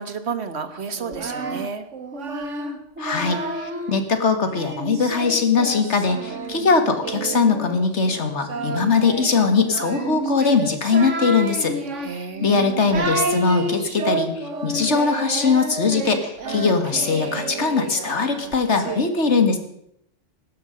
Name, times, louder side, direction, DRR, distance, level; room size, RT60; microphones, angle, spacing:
voice 1, 0.0-1.8 12.0-13.2, right 5 dB, 60° right, 10 dB, 1.6 m, -31 dB
Singing, 0.9-4.0 4.5-19.0, right 3 dB, 85° right, 1.9 m, -30 dB
voice 2, 3.0-19.6, left 4 dB, 70° left, 7 dB, 2.1 m, -21 dB
17.0 x 12.5 x 5.2 m, 0.75 s
omnidirectional pair, 1.2 m